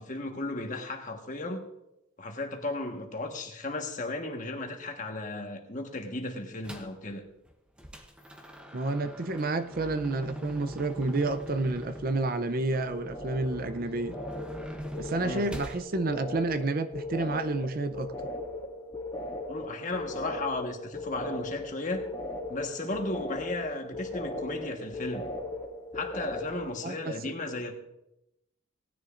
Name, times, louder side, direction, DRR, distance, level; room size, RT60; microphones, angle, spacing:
voice 1, 0.0-1.7 2.2-7.2 15.2-15.5 19.5-22.0 22.5-25.2 25.9-27.7, left 2 dB, 35° left, 3 dB, 1.4 m, -35 dB
sound 1, 6.6-7.0 7.5-15.8, equal, 5° right, 0.8 m, -42 dB
voice 2, 8.7-14.1 15.0-18.1 26.8-27.3, right 2 dB, 40° right, 10 dB, 0.5 m, -30 dB
sound 2, 9.1-9.6 9.9-10.7 10.9-26.7, left 2 dB, 20° left, 1.9 m, -39 dB
18.0 x 10.0 x 2.5 m, 0.86 s
head